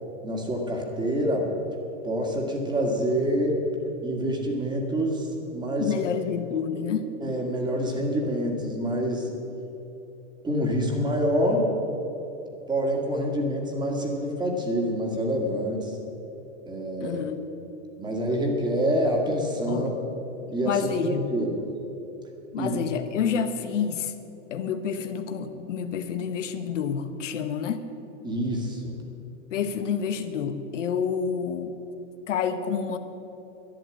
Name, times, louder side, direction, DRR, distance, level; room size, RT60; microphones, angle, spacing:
voice 1, 0.2-1.5 2.0-3.7 4.0-5.9 7.2-9.3 10.4-11.7 12.7-15.9 16.7-17.2 18.0-19.9 20.5-21.6 22.6-22.8 28.2-29.0, equal, 10° right, 1 dB, 1.9 m, -26 dB
voice 2, 5.8-7.0 17.0-17.5 19.7-19.9 20.4-21.3 22.5-24.1 24.5-27.8 29.5-31.8 32.3-33.0, left 7 dB, 80° left, 8 dB, 1.2 m, -28 dB
11.5 x 9.9 x 8.7 m, 3.0 s
supercardioid pair, 145°, 36 cm